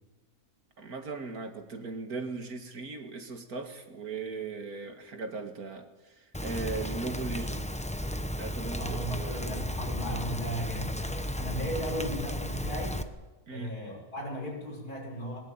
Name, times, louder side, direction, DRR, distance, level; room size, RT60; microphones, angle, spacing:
voice 1, 0.8-7.7 8.4-9.5 13.5-13.7, right 3 dB, 70° right, 6 dB, 2.5 m, -38 dB
Rain, 6.3-13.0, equal, 5° left, 0.8 m, -34 dB
voice 2, 8.8-13.0 13.5-15.4, equal, 80° left, 0 dB, 6.6 m, -36 dB
21.0 x 19.5 x 8.9 m, 1.2 s
omnidirectional pair, 1.6 m